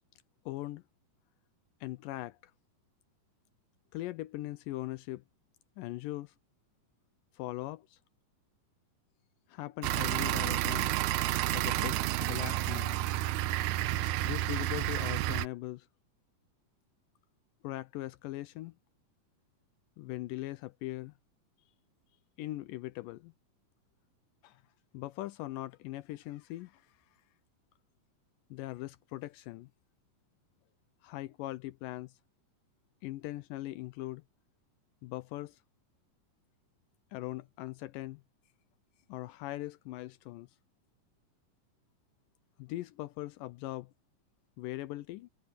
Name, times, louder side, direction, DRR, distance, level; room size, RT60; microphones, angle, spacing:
voice 1, 0.5-0.8 1.8-2.5 3.9-5.2 5.8-6.3 7.3-8.0 9.5-11.0 11.5-13.0 14.2-15.9 17.6-18.8 20.0-21.1 22.4-23.3 24.4-24.6 24.9-27.0 28.5-29.7 31.0-32.2 33.0-34.2 35.0-35.6 37.1-38.2 39.1-40.5 42.6-43.9 44.6-45.3, left 17 dB, 85° left, 2.3 m, -40 dB
sound 1, 9.8-15.5, right 15 dB, 80° right, 1.9 m, -30 dB
omnidirectional pair, 3.9 m